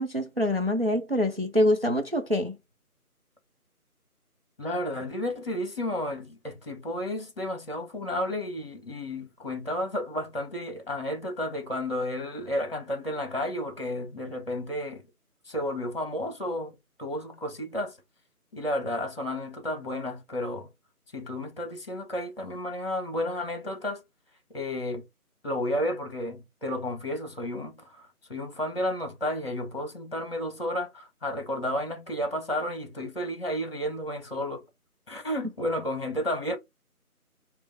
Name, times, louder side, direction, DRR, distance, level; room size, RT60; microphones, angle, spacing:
voice 1, 0.0-2.6, left 1 dB, 40° right, 0.5 m, -25 dB
voice 2, 4.6-15.0 15.5-17.9 18.5-20.7 21.1-24.0 24.5-25.0 25.4-34.6 35.1-36.6, left 1 dB, 40° left, 1.3 m, -32 dB
4.7 x 2.1 x 4.2 m
figure-of-eight pair, 170°, 45 cm